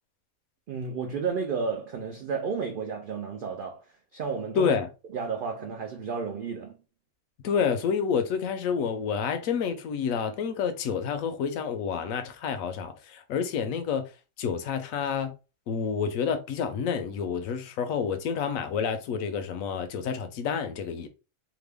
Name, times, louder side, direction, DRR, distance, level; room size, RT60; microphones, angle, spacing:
voice 1, 0.7-3.8 4.1-4.7 5.1-6.8, right 5 dB, 80° right, 0.4 m, -32 dB
voice 2, 4.5-4.9 7.4-14.1 14.4-15.3 15.7-21.1, left 6 dB, 75° left, 1.0 m, -29 dB
3.0 x 2.2 x 3.3 m
omnidirectional pair, 1.4 m